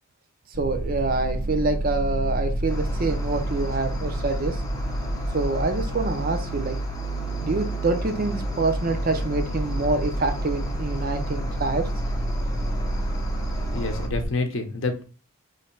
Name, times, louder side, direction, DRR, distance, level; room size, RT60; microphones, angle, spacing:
sound 1, 0.5-14.2, right 1 dB, 85° right, 1.2 m, -29 dB
voice 1, 0.6-4.6 5.3-6.7 7.4-11.9, right 3 dB, 40° right, 7 dB, 0.5 m, -26 dB
Cricket, 2.7-14.1, left 2 dB, 15° left, 0.6 m, -38 dB
voice 2, 13.7-15.0, left 3 dB, 55° left, 5 dB, 0.7 m, -28 dB
3.1 x 2.8 x 4.4 m, 0.35 s
head